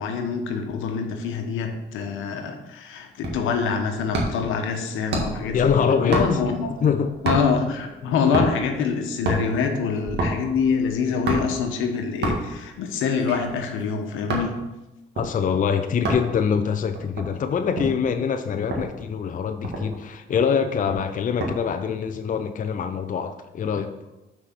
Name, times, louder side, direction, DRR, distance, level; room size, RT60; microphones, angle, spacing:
voice 1, 0.0-5.7 6.0-6.8 7.2-14.6, left 5 dB, 90° left, 4 dB, 1.1 m, -25 dB
sound 1, 3.2-3.5 4.1-4.5 5.1-5.5 6.1-6.6 7.3-7.6 8.3-8.7 9.1-9.5 10.2-10.4 11.3-11.6 12.2-12.6 13.2-14.5 15.2-15.3 16.0-16.3 16.9-18.0 18.7-18.9 19.3-19.4 19.6-20.1 20.9-21.6 21.9-22.2, right 2 dB, 60° right, 1.8 m, -27 dB
sound 2, 5.1-13.1, right 1 dB, 20° right, 1.2 m, -44 dB
voice 2, 5.5-6.4 6.8-7.2 15.2-23.9, left 6 dB, 40° left, 8 dB, 0.5 m, -24 dB
6.3 x 4.8 x 6.0 m, 1.0 s
cardioid pair, 90°, 20 cm